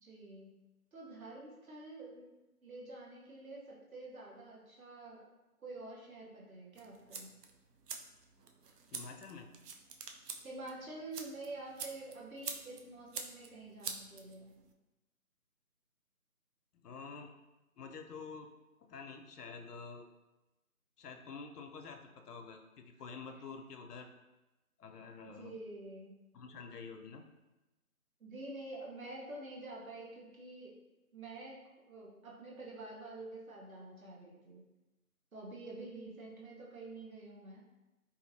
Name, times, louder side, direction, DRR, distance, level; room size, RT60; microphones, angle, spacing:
voice 1, 0.0-0.5 0.9-2.3 2.6-5.3 5.6-7.3 10.4-14.5 25.2-26.2 28.2-30.8 31.1-34.6 35.3-37.6, right 2 dB, 65° right, -3 dB, 0.9 m, -48 dB
sound 1, 6.7-14.7, right 5 dB, 85° right, 0.5 m, -47 dB
voice 2, 8.9-9.5 16.7-17.3 17.8-18.5 18.9-20.1 21.0-24.1 24.8-25.6 26.3-27.2, left 5 dB, 85° left, 4 dB, 0.5 m, -48 dB
2.7 x 2.6 x 2.6 m, 1.0 s
figure-of-eight pair, 170°, 46 cm